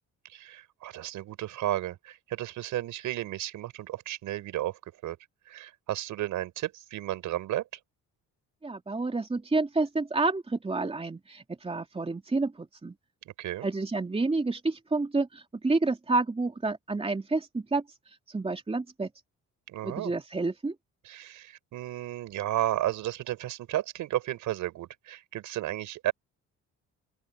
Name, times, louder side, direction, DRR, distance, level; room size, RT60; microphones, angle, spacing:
voice 1, 0.3-5.2 5.5-7.6 13.4-13.7 19.7-20.1 21.0-26.1, right 14 dB, 85° right, 5.2 m, -33 dB
voice 2, 8.6-12.9 13.6-17.8 18.3-19.1 19.8-20.7, right 3 dB, 20° right, 2.9 m, -29 dB
open air
cardioid pair, 90°, 30 cm